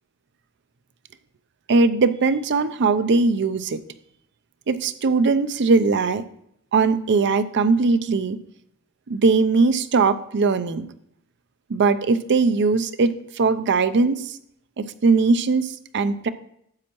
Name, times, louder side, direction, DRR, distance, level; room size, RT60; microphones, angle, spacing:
voice 1, 1.7-3.8 4.7-6.2 6.7-8.4 9.1-10.9 11.7-14.4 14.8-16.3, right 4 dB, 50° right, 12 dB, 0.5 m, -20 dB
9.7 x 7.3 x 3.0 m, 0.73 s
head